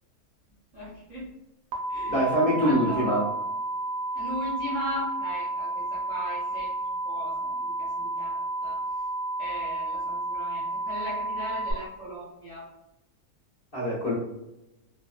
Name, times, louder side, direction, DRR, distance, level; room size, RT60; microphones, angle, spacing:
voice 1, 0.7-1.3 1.9-2.2 2.6-3.2 4.1-6.7 7.0-7.5 7.8-8.8 9.4-12.7, equal, 35° right, -8 dB, 0.8 m, -37 dB
sound 1, 1.7-11.7, right 2 dB, 75° right, 1.1 m, -31 dB
voice 2, 2.1-3.2 13.7-14.1, equal, 45° left, -9 dB, 1.0 m, -24 dB
2.9 x 2.2 x 2.3 m, 0.90 s
omnidirectional pair, 1.6 m